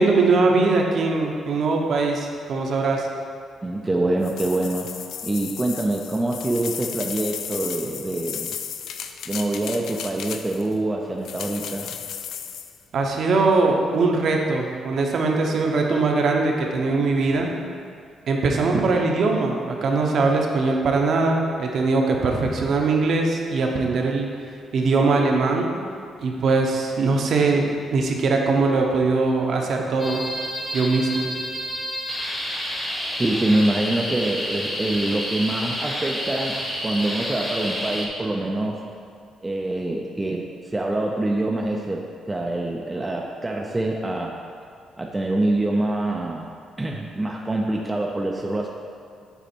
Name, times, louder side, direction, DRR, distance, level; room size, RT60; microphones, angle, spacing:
voice 1, 0.0-3.1 12.9-17.5 18.3-24.3 24.7-25.7 26.2-30.2 30.7-31.3, right 3 dB, 45° right, 1 dB, 0.7 m, -21 dB
voice 2, 3.6-4.9 5.2-8.5 9.3-12.0 33.2-38.8 39.4-44.3 45.0-48.7, right 2 dB, 10° right, -1 dB, 0.3 m, -25 dB
sound 1, 4.2-10.7 11.2-12.8, left 8 dB, 65° left, 0.4 m, -34 dB
sound 2, 30.0-38.1, equal, 15° left, 0.8 m, -29 dB
8.1 x 4.0 x 4.4 m, 2.3 s
cardioid pair, 180°, 0 cm